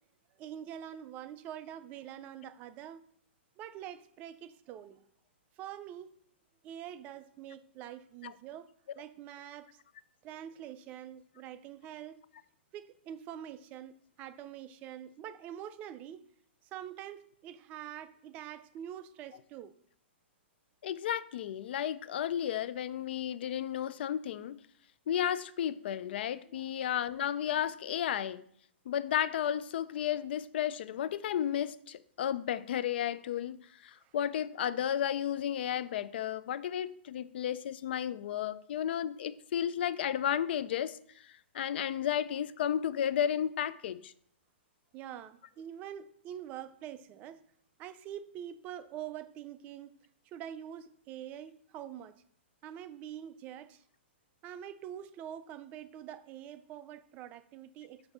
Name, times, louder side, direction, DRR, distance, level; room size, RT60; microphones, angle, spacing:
voice 1, 0.4-3.0 3.6-5.0 5.6-6.1 6.6-8.7 9.0-9.7 10.2-12.2 12.7-16.2 16.7-19.7 26.4-26.7 44.9-47.4 47.8-49.9 50.3-52.1 52.6-53.8 54.4-58.0, right 10 dB, 25° right, 0.3 m, -45 dB
voice 2, 20.8-24.6 25.1-28.4 28.9-41.0 41.5-44.1, left 10 dB, 60° left, 0.3 m, -33 dB
6.7 x 2.6 x 5.4 m
hypercardioid pair, 150°, 6 cm